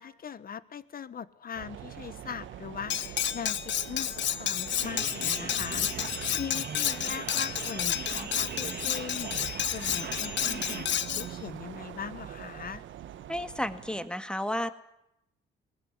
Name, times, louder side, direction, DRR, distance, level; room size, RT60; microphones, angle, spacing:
voice 1, 0.0-12.8, left 7 dB, 45° left, 16 dB, 1.4 m, -41 dB
sound 1, 1.6-14.1, right 11 dB, 75° right, 1.4 m, -43 dB
Cutlery silverware, 2.9-11.3, left 10 dB, 65° left, 1.1 m, -31 dB
sound 2, 4.8-10.9, right 6 dB, 55° right, 3.1 m, -40 dB
voice 2, 13.3-14.7, left 1 dB, 5° left, 10 dB, 2.0 m, -32 dB
20.5 x 18.5 x 9.7 m, 0.81 s
cardioid pair, 90°, 20 cm